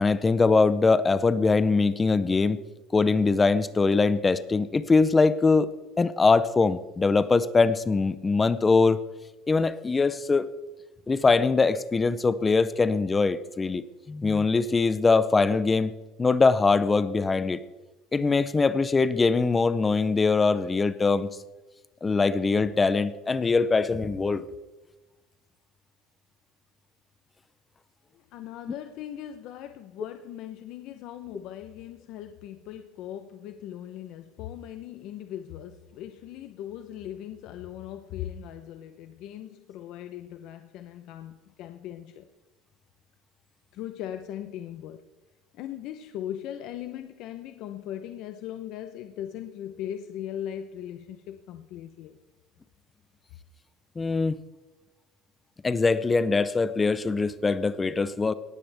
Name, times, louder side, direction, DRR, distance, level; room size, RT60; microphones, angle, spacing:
voice 1, 0.0-2.6 2.9-5.7 6.0-9.0 9.5-10.5 11.1-17.6 18.1-21.3 22.0-24.4 54.0-54.4 55.6-58.3, left 4 dB, 15° left, 0.6 m, -22 dB
voice 2, 28.1-42.3 43.7-45.0 45.5-52.2, left 11 dB, 50° left, 0.8 m, -39 dB
18.5 x 14.5 x 3.5 m
cardioid pair, 160°, 0 cm